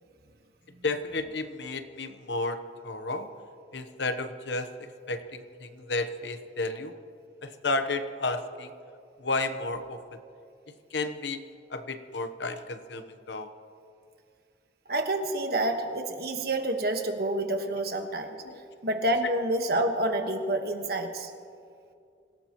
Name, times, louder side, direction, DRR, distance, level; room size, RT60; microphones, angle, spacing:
voice 1, 0.8-3.3 3.7-6.9 7.4-8.7 9.2-10.0 10.9-11.4 11.7-13.5 17.6-17.8 18.4-18.6, left 2 dB, 80° left, 9 dB, 1.0 m, -32 dB
voice 2, 14.9-18.4 18.8-21.3, right 1 dB, 60° right, 5 dB, 1.4 m, -28 dB
26.0 x 17.5 x 3.0 m, 2.4 s
head